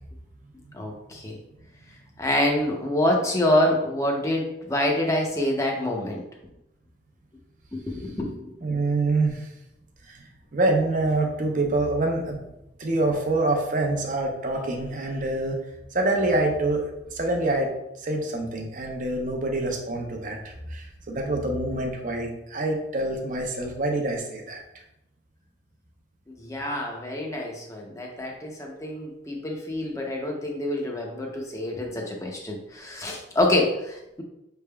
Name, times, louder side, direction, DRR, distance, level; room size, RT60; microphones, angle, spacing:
voice 1, 0.7-1.4 2.2-6.2 7.7-8.5 26.3-34.2, left 1 dB, 15° left, 0 dB, 0.6 m, -26 dB
voice 2, 8.6-9.5 10.0-12.4 12.8-15.6 15.9-17.7 18.0-24.6, right 2 dB, 45° right, 1 dB, 0.7 m, -26 dB
5.8 x 3.4 x 2.3 m, 0.88 s
head